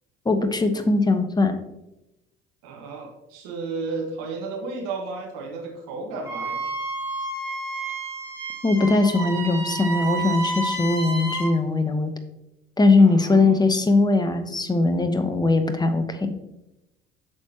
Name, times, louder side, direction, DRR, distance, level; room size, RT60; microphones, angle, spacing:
voice 1, 0.2-1.6 8.6-12.1 12.8-16.3, left 3 dB, 15° left, 9 dB, 0.9 m, -20 dB
voice 2, 2.6-6.7 13.0-13.6, right 3 dB, 60° right, 1 dB, 1.4 m, -33 dB
Wind instrument woodwind instrument, 6.2-11.5, right 3 dB, 10° right, 2.7 m, -30 dB
8.8 x 6.2 x 2.9 m, 0.92 s
figure-of-eight pair, 55°, 32 cm